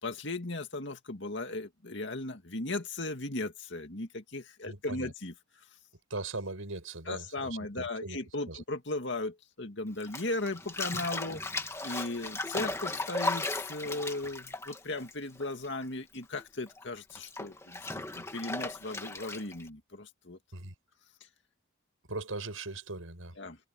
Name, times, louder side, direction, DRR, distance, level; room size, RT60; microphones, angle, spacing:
voice 1, 0.0-5.3 7.1-11.4 11.8-20.4 23.4-23.6, left 2 dB, 60° left, 2.3 m, -37 dB
voice 2, 4.7-5.1 6.1-8.2 8.5-8.6 20.5-20.7 22.1-23.4, right 2 dB, 90° right, 5.7 m, -39 dB
Bathtub (filling or washing), 10.0-15.8 16.1-19.7, left 2 dB, 15° left, 1.9 m, -36 dB
head